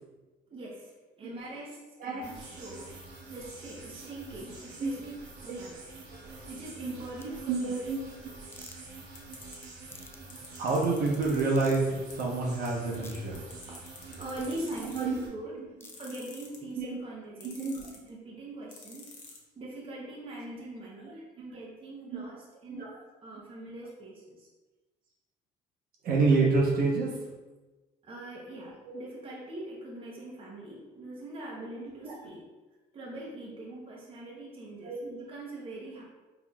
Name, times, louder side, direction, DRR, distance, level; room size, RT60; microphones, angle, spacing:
voice 1, 0.5-3.0 3.3-5.2 5.4-5.7 6.1-7.7 13.7-13.8 14.1-17.8 18.1-19.2 19.6-23.0 23.2-24.5 28.0-32.5 32.9-36.0, right 2 dB, 35° right, -4 dB, 0.9 m, -42 dB
sound 1, 2.2-15.3, right 3 dB, 85° right, 1.1 m, -47 dB
sound 2, 7.2-7.3 8.5-8.8 9.9-10.2 11.5-11.9 13.0-13.2 14.4-14.5 15.8-16.0, left 3 dB, 15° left, 0.3 m, -48 dB
voice 2, 7.5-8.3 10.6-13.4 14.9-15.2 15.6-15.7 16.7-17.0 17.4-17.9 22.1-22.2 22.7-22.9 26.0-27.1 28.9-29.0 31.8-32.1 34.8-35.1, right 3 dB, 60° right, -3 dB, 1.0 m, -28 dB
sound 3, 9.1-9.6 10.3-11.4 12.1-12.2 12.6-12.7 12.9-15.2 15.8-16.7 17.4-18.1 18.7-19.4, left 6 dB, 50° left, 0.8 m, -48 dB
4.1 x 3.4 x 2.3 m, 1.2 s
cardioid pair, 110°, 17 cm